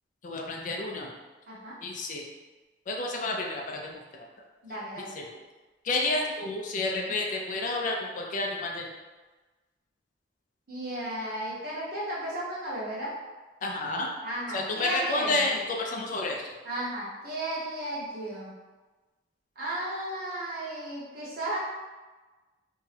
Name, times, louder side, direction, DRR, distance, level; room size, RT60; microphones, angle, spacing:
voice 1, 0.2-1.1 1.8-2.2 2.9-4.3 5.1-5.2 5.8-8.9 13.6-14.1 14.5-16.5, left 2 dB, 45° left, 0 dB, 0.4 m, -30 dB
voice 2, 4.6-5.1 10.7-13.1 14.2-15.5 16.6-18.5 19.6-21.6, right 1 dB, 55° right, -7 dB, 1.0 m, -34 dB
2.6 x 2.2 x 3.2 m, 1.2 s
head